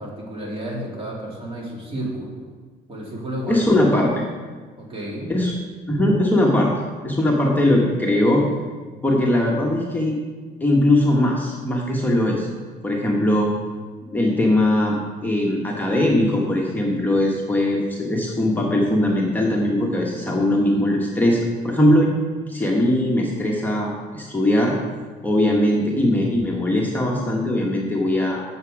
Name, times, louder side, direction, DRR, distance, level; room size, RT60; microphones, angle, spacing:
voice 1, 0.0-2.4 2.9-4.0 4.8-5.3, right 1 dB, 35° right, -3 dB, 2.5 m, -31 dB
voice 2, 3.5-4.1 5.3-5.5 5.9-6.7 7.0-8.5 9.0-10.2 10.6-12.5 12.8-13.5 14.1-22.1 22.5-24.7 25.2-28.4, left 1 dB, 10° left, -2 dB, 1.1 m, -20 dB
8.0 x 6.9 x 4.8 m, 1.5 s
cardioid pair, 110°, 17 cm